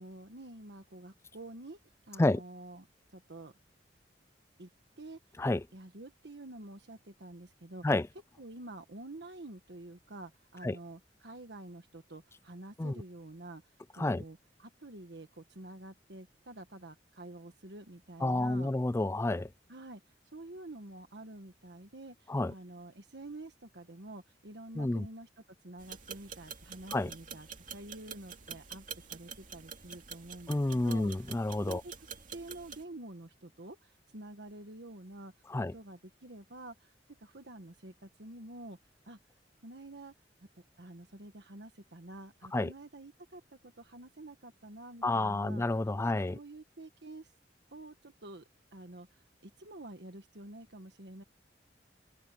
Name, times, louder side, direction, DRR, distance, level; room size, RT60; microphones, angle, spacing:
voice 1, 0.0-1.8 2.1-3.5 4.6-4.7 5.0-5.4 5.7-7.8 8.4-18.7 19.7-25.3 25.6-31.9 32.3-35.3 35.6-36.9 37.2-38.8 39.0-39.2 39.6-40.1 40.5-45.6 46.3-47.3 47.7-51.2, right 2 dB, 70° right, 1.4 m, -48 dB
voice 2, 18.2-19.5 22.3-22.5 24.8-25.1 26.9-27.1 30.5-31.8 35.5-35.7 42.5-42.7 45.0-46.4, left 2 dB, 15° left, 0.3 m, -30 dB
sound 1, 25.8-32.8, right 6 dB, 45° right, 2.5 m, -47 dB
head